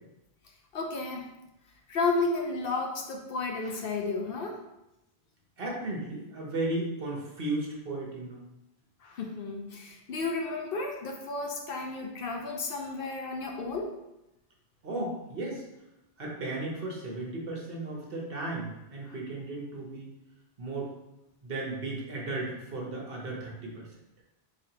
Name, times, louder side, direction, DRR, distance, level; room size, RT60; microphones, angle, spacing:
voice 1, 0.7-1.3 1.9-4.6 9.0-13.9 19.1-19.2, left 3 dB, 65° left, 1 dB, 0.8 m, -32 dB
voice 2, 5.6-8.4 14.8-15.6 16.2-20.1 20.6-20.9 21.4-23.9, right 2 dB, 60° right, -2 dB, 1.1 m, -35 dB
4.0 x 3.1 x 2.8 m, 0.90 s
omnidirectional pair, 1.1 m